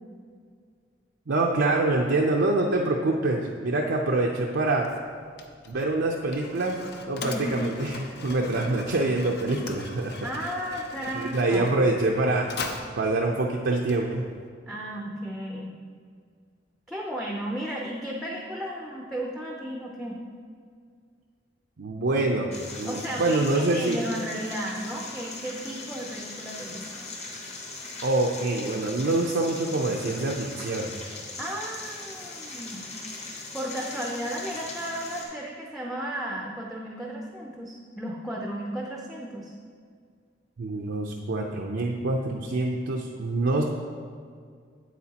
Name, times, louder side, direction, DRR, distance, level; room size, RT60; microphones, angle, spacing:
voice 1, 1.3-4.9 5.7-6.8 7.1-8.0 8.2-10.2 11.1-12.5 13.0-14.2 21.8-24.0 28.0-30.9 40.6-43.6, right 2 dB, 75° right, -1 dB, 0.5 m, -25 dB
Mechanisms, 4.8-14.5, left 3 dB, 60° left, 0.6 m, -41 dB
voice 2, 7.2-7.7 10.2-12.0 14.7-15.8 16.9-20.2 22.9-27.1 31.4-33.0 33.3-39.5, right 1 dB, ahead, -2 dB, 0.5 m, -34 dB
sound 1, 22.5-35.2, left 3 dB, 35° left, 1.1 m, -40 dB
8.3 x 8.0 x 2.9 m, 2.1 s
head